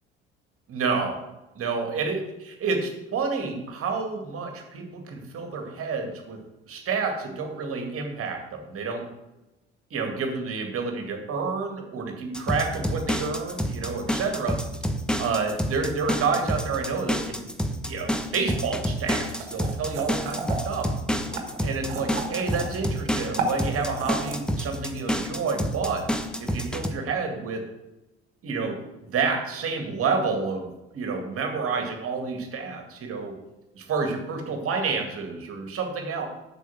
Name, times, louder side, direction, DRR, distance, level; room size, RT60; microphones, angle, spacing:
voice 1, 0.7-1.2 1.6-6.4 6.7-9.0 9.9-14.6 15.2-17.5 17.9-20.4 20.7-20.8 21.6-26.1 26.4-27.6 28.4-33.4 33.7-36.3, right 4 dB, 40° right, 4 dB, 2.1 m, -29 dB
sound 1, 12.3-26.9, equal, ahead, 0.9 m, -28 dB
sound 2, 18.5-18.6 19.1-20.8 21.3-22.8 23.1-24.4, right 4 dB, 70° right, 1.5 m, -32 dB
8.3 x 6.7 x 6.1 m, 1.0 s
figure-of-eight pair, 60°, 35 cm